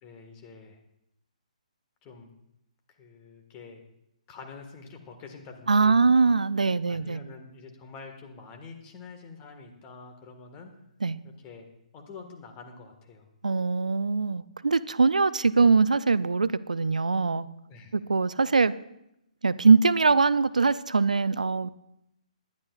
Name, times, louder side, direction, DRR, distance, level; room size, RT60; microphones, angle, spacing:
voice 1, 0.0-0.8 2.0-2.3 2.9-3.8 4.3-6.0 6.6-10.7 11.2-11.7 11.9-13.3 17.6-17.9, left 4 dB, 25° left, 4 dB, 1.6 m, -46 dB
voice 2, 5.7-7.2 11.0-11.2 13.4-17.5 17.9-18.7 19.4-21.7, right 4 dB, 85° right, 17 dB, 0.4 m, -22 dB
20.0 x 10.5 x 2.4 m, 0.82 s
figure-of-eight pair, 135°, 4 cm